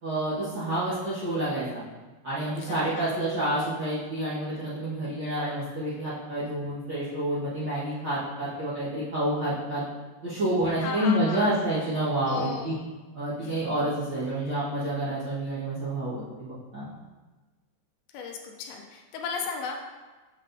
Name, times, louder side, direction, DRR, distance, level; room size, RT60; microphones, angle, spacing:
voice 1, 0.0-1.8 2.2-9.8 10.2-12.7 13.1-16.9, right 1 dB, 80° right, -13 dB, 0.9 m, -29 dB
voice 2, 2.7-3.2 10.8-11.6 12.3-12.8 13.4-13.6 18.1-19.9, left 4 dB, 80° left, 2 dB, 2.4 m, -35 dB
6.3 x 6.3 x 2.7 m, 1.3 s
omnidirectional pair, 4.5 m